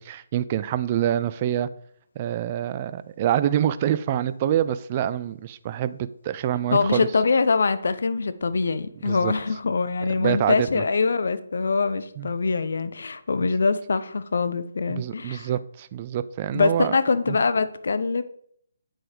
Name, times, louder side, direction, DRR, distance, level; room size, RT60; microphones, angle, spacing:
voice 1, 0.0-1.7 2.2-7.1 9.1-9.3 10.1-10.8 12.2-12.3 14.9-17.0 17.3-17.4, right 11 dB, 30° right, 0.6 m, -26 dB
voice 2, 6.7-15.5 16.5-18.2, left 4 dB, 60° left, 0.9 m, -23 dB
9.0 x 7.6 x 5.1 m
figure-of-eight pair, 145°, 0 cm